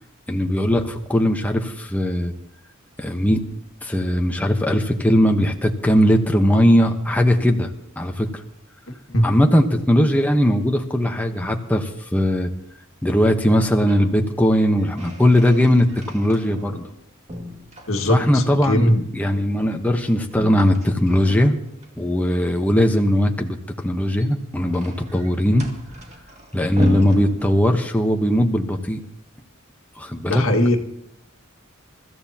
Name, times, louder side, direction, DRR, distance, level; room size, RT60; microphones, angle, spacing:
voice 1, 0.3-2.3 3.0-3.4 3.8-7.7 8.0-8.4 9.2-12.5 13.0-15.9 16.1-16.9 18.1-18.8 19.1-21.6 22.0-23.6 23.8-25.7 26.5-29.0 30.0-30.4, equal, 10° left, 2 dB, 1.0 m, -19 dB
sound 1, 13.9-14.1 14.5-17.0 17.3-18.5 20.3-21.9 23.9-28.1, equal, 35° right, 2.1 m, -35 dB
voice 2, 17.9-19.0 30.3-30.8, left 1 dB, 75° left, 4 dB, 1.9 m, -19 dB
28.5 x 14.0 x 2.9 m, 0.76 s
head